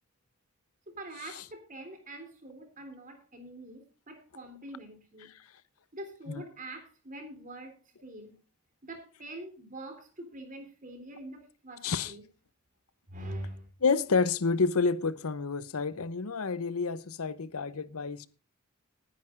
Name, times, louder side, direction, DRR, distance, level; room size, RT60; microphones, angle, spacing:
voice 1, 0.9-5.3 5.9-7.8 8.0-8.4 8.8-12.2 13.1-13.7, right 1 dB, 35° right, 3.4 m, -44 dB
voice 2, 11.8-12.1 13.8-18.3, left 4 dB, 75° left, 0.8 m, -29 dB
19.5 x 10.0 x 2.5 m
head